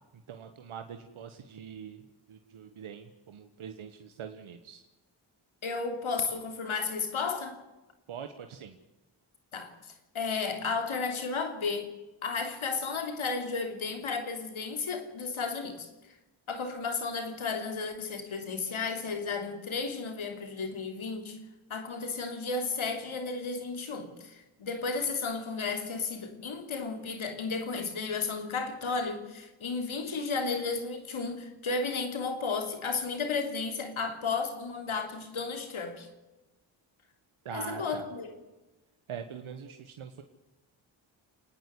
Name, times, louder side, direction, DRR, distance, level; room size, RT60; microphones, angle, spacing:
voice 1, 0.3-2.0 2.3-4.8 8.1-8.8 37.4-38.1 39.1-40.2, right 7 dB, 90° right, 1.3 m, -43 dB
voice 2, 5.6-7.6 9.5-11.9 12.2-15.9 16.5-21.4 21.7-36.1 37.5-38.3, left 4 dB, 80° left, 3.3 m, -33 dB
28.5 x 9.9 x 9.6 m
cardioid pair, 45°, 48 cm